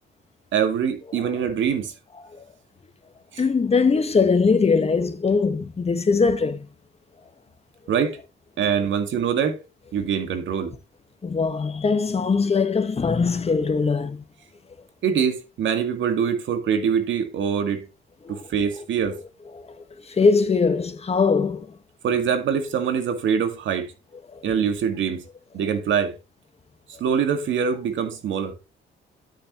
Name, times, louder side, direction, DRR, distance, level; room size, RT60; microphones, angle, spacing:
voice 1, 0.5-1.9 3.3-3.4 7.9-8.2 8.6-9.6 9.9-10.7 15.0-17.9 18.3-19.2 22.0-23.9 24.4-25.3 25.5-26.2 27.0-28.5, right 7 dB, 70° right, 2.1 m, -24 dB
voice 2, 3.4-6.7 11.2-14.2 18.2-18.4 20.1-21.7 24.3-24.4, left 4 dB, 30° left, 1.6 m, -21 dB
11.5 x 6.6 x 3.1 m
cardioid pair, 90°, 20 cm